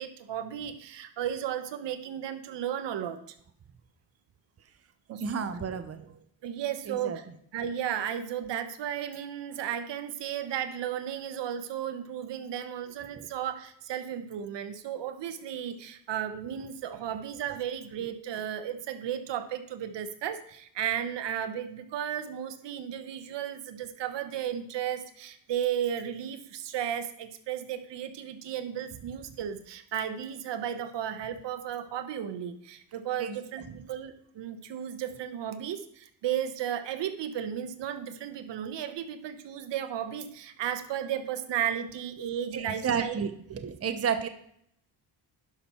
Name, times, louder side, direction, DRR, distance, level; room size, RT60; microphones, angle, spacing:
voice 1, 0.0-3.2 5.1-5.2 6.4-7.3 7.5-43.2, right 9 dB, 70° right, 10 dB, 1.1 m, -34 dB
voice 2, 5.2-6.1 6.9-7.2 33.2-33.3 42.5-43.3 43.6-44.3, right 7 dB, 30° right, 9 dB, 0.9 m, -31 dB
11.0 x 6.2 x 4.4 m, 0.69 s
cardioid pair, 90°, 45 cm